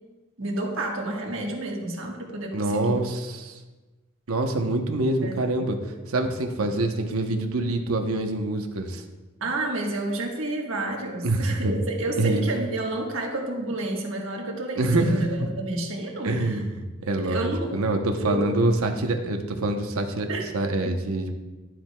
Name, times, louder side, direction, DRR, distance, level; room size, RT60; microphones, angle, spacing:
voice 1, 0.4-2.9 5.2-5.7 9.4-16.6 17.1-17.8 18.2-18.5 20.3-20.4 20.8-20.9, right 2 dB, 65° right, 0 dB, 1.4 m, -30 dB
voice 2, 2.5-3.6 4.3-5.8 6.1-9.0 11.2-11.7 12.2-12.4 14.8-15.5 16.2-20.3 20.5-21.3, right 2 dB, 90° right, 4 dB, 0.9 m, -25 dB
11.5 x 7.5 x 2.3 m, 1.2 s
head